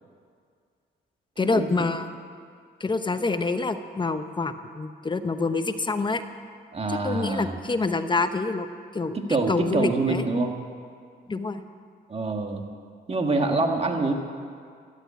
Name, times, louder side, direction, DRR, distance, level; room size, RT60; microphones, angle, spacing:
voice 1, 1.4-2.1 2.8-6.2 6.9-8.7 8.9-9.2 9.5-10.2 11.3-11.6, left 3 dB, 25° left, 9 dB, 1.0 m, -26 dB
voice 2, 6.7-7.5 9.1-10.5 12.1-12.6 13.1-14.1, right 3 dB, 30° right, 3 dB, 2.0 m, -25 dB
13.0 x 11.5 x 8.5 m, 2.2 s
cardioid pair, 90°, 20 cm